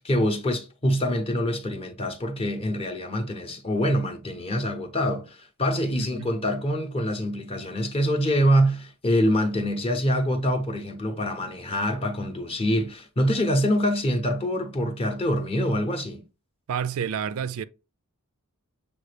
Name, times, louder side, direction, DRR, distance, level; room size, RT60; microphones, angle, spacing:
voice 1, 0.0-16.2, equal, 25° left, 0.7 m, -25 dB
voice 2, 5.9-6.3 16.7-17.6, right 7 dB, 65° right, 0.4 m, -29 dB
6.7 x 2.3 x 3.2 m
head